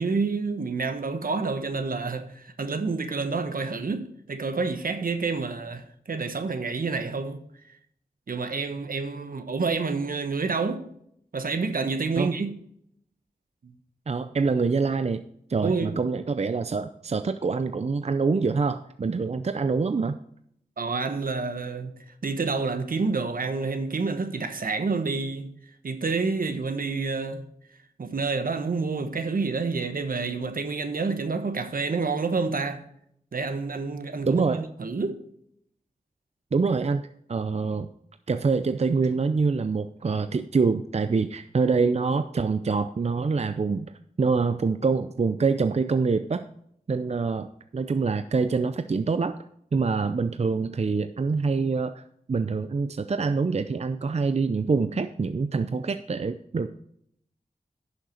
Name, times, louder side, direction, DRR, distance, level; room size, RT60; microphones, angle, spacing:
voice 1, 0.0-7.4 8.3-10.9 11.3-12.6 13.6-13.7 15.6-16.0 20.8-25.5 25.8-27.4 28.0-32.8 33.3-35.2, right 4 dB, 70° right, 1.1 m, -28 dB
voice 2, 14.1-15.2 15.5-20.2 34.2-34.6 36.5-37.9 38.3-43.9 44.2-46.4 46.9-49.4 49.7-52.0 52.3-56.8, right 4 dB, 45° right, 0.5 m, -25 dB
11.0 x 6.5 x 4.5 m
cardioid pair, 55°, 15 cm